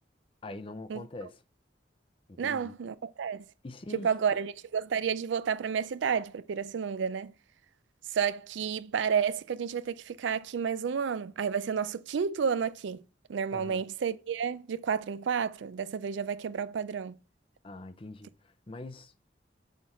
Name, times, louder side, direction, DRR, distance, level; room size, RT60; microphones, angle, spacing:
voice 1, 0.4-1.4 2.3-2.7 3.6-4.2 13.5-13.8 17.6-19.2, left 2 dB, 30° left, 0.5 m, -43 dB
voice 2, 2.4-3.4 3.9-7.3 8.1-13.0 13.3-17.2, right 7 dB, 85° right, 0.4 m, -31 dB
5.8 x 4.6 x 4.1 m
head